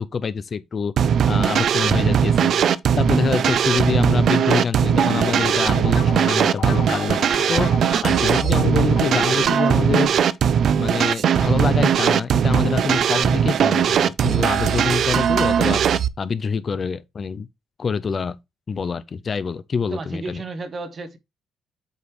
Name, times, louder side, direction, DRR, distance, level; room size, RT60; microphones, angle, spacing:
voice 1, 0.0-2.5 3.0-7.2 7.5-7.7 8.0-10.1 10.8-15.8 16.2-17.5 17.8-18.4 18.7-20.4, left 5 dB, 30° left, 0.4 m, -25 dB
sound 1, 1.0-16.1, right 8 dB, 50° right, 0.4 m, -19 dB
sound 2, 4.9-10.1, left 8 dB, 70° left, 1.5 m, -32 dB
voice 2, 19.9-21.2, right 3 dB, 30° right, 0.9 m, -32 dB
8.1 x 5.1 x 3.1 m
cardioid pair, 160°, 0 cm